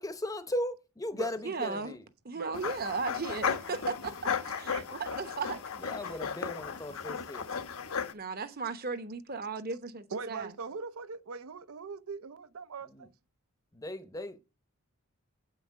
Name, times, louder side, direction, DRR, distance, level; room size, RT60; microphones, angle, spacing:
voice 1, 0.0-2.0 5.8-7.5 12.8-13.1 13.7-14.4, left 1 dB, 15° left, 0.7 m, -37 dB
voice 2, 1.4-1.9 2.2-5.6 8.1-10.6, right 4 dB, 45° right, 0.9 m, -36 dB
voice 3, 2.4-2.7 4.7-4.8 10.1-13.1, right 5 dB, 75° right, 0.6 m, -40 dB
sound 1, 2.5-8.1, left 6 dB, 75° left, 1.0 m, -35 dB
8.1 x 5.7 x 6.3 m
head